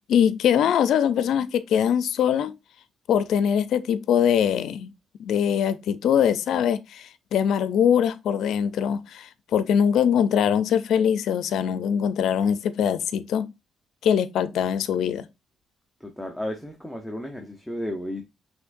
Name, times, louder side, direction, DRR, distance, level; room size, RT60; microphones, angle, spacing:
voice 1, 0.0-2.5 3.1-4.9 5.2-13.5 14.0-15.3, left 8 dB, 75° left, 0.4 m, -22 dB
voice 2, 16.0-18.2, left 1 dB, ahead, 0.8 m, -33 dB
5.8 x 3.1 x 2.6 m
cardioid pair, 90°, 0 cm